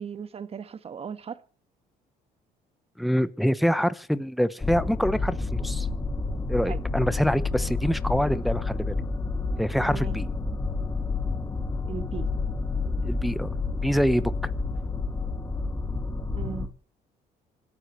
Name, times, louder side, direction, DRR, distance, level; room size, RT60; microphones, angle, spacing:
voice 1, 0.0-1.4 6.7-6.8 9.9-10.2 11.8-12.3 16.3-16.7, right 7 dB, 35° right, 1.3 m, -37 dB
voice 2, 3.0-5.9 6.5-9.0 9.6-10.2 13.0-13.5 13.8-14.3, equal, ahead, 0.9 m, -25 dB
sound 1, 4.6-16.7, left 3 dB, 15° left, 2.3 m, -29 dB
26.0 x 13.0 x 3.2 m
cardioid pair, 110°, 17 cm